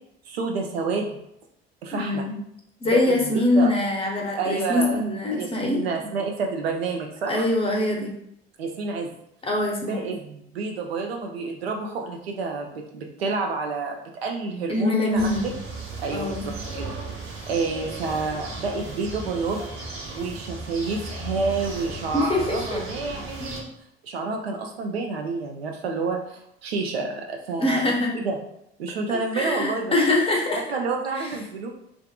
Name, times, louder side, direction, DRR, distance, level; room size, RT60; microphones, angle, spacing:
voice 1, 0.3-1.2 1.8-2.2 2.8-3.7 4.4-5.0 5.3-7.5 8.6-9.1 9.8-15.5 16.0-16.9 17.5-19.6 20.1-23.7 24.0-27.8 28.1-28.4 28.8-29.9 30.7-31.7, right 4 dB, 75° right, 2 dB, 0.5 m, -29 dB
voice 2, 1.9-2.4 2.8-5.8 7.3-8.1 9.4-10.1 14.7-15.5 16.1-16.5 22.1-22.8 23.4-23.5 27.6-28.1 29.3-30.6 31.2-31.3, left 2 dB, 20° left, 0 dB, 0.6 m, -23 dB
sound 1, 15.2-23.6, right 2 dB, 40° right, 0.8 m, -36 dB
2.5 x 2.5 x 2.3 m, 0.75 s
figure-of-eight pair, 55°, 31 cm